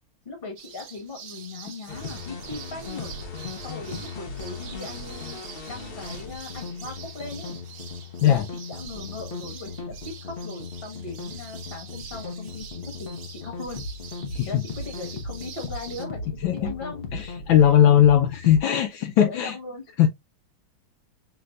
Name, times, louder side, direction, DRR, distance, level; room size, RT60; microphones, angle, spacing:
voice 1, 0.2-3.1 3.6-7.6 8.2-13.8 14.5-17.1 19.2-19.8, left 3 dB, 35° left, 1.2 m, -39 dB
sound 1, 0.6-16.1, right 7 dB, 60° right, 1.1 m, -45 dB
sound 2, 1.9-18.6, left 4 dB, 90° left, 0.5 m, -37 dB
voice 2, 14.3-14.6 16.4-16.7 17.1-19.6 20.0-20.1, left 10 dB, 75° left, 1.2 m, -19 dB
5.9 x 3.0 x 2.4 m
omnidirectional pair, 2.4 m